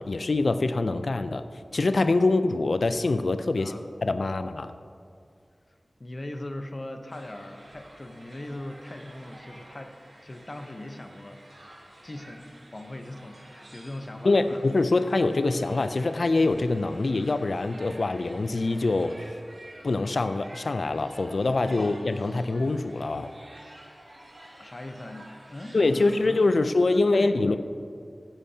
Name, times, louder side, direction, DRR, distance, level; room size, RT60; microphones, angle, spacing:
voice 1, 0.0-1.4 1.7-3.7 4.0-4.7 14.2-19.2 19.8-23.3 25.7-27.6, left 3 dB, 85° left, 10 dB, 0.4 m, -24 dB
voice 2, 6.0-9.9 10.2-11.6 12.0-14.6 21.8-21.9 24.6-27.6, left 1 dB, 50° left, 5 dB, 0.8 m, -40 dB
sound 1, 7.1-26.6, right 1 dB, 75° right, 2.1 m, -50 dB
16.0 x 8.9 x 2.8 m, 2.2 s
wide cardioid pair, 50°, 0 cm